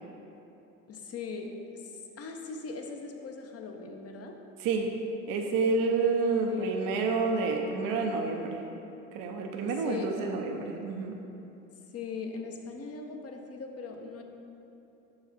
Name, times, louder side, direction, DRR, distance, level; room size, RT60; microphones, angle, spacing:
voice 1, 0.9-4.3 6.5-6.9 9.7-10.2 11.9-14.2, left 4 dB, 40° left, 3 dB, 0.8 m, -39 dB
voice 2, 5.3-8.6 9.1-11.2, right 4 dB, 60° right, 3 dB, 0.7 m, -29 dB
5.8 x 4.8 x 4.2 m, 2.9 s
hypercardioid pair, 65°, 38 cm